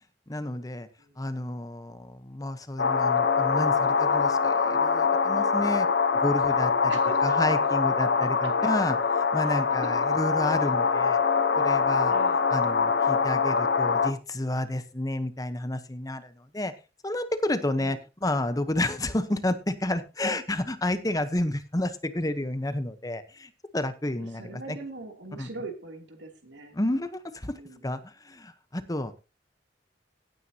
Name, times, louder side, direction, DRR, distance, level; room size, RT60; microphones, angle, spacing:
voice 1, 0.3-0.9 1.2-5.9 6.1-6.9 7.2-9.0 9.3-11.2 11.6-12.1 12.5-16.7 17.0-24.8 25.4-25.5 26.7-27.5 27.8-29.1, left 1 dB, 20° left, 11 dB, 1.0 m, -30 dB
sound 1, 2.8-14.1, left 5 dB, 65° left, 0.9 m, -24 dB
voice 2, 6.9-7.7 8.2-8.7 9.4-10.2 10.6-10.9 12.1-12.4 17.8-18.0 24.3-26.8 27.5-27.9, right 3 dB, 85° right, 4 dB, 2.9 m, -41 dB
17.0 x 9.3 x 2.9 m, 0.29 s
head